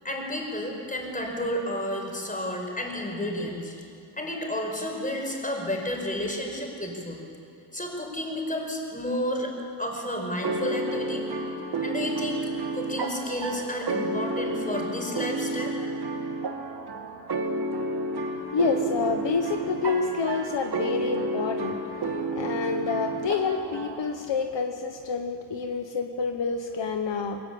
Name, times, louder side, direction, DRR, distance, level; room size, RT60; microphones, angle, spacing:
voice 1, 0.0-3.8 4.1-7.2 7.7-9.5 9.8-11.2 11.8-12.5 12.7-15.7, left 1 dB, 15° left, 1 dB, 5.0 m, -31 dB
sound 1, 10.4-24.1, right 2 dB, 55° right, 2.0 m, -31 dB
voice 2, 18.5-21.8 22.3-27.4, left 5 dB, 65° left, 5 dB, 1.3 m, -28 dB
21.5 x 19.5 x 8.6 m, 2.7 s
cardioid pair, 95°, 47 cm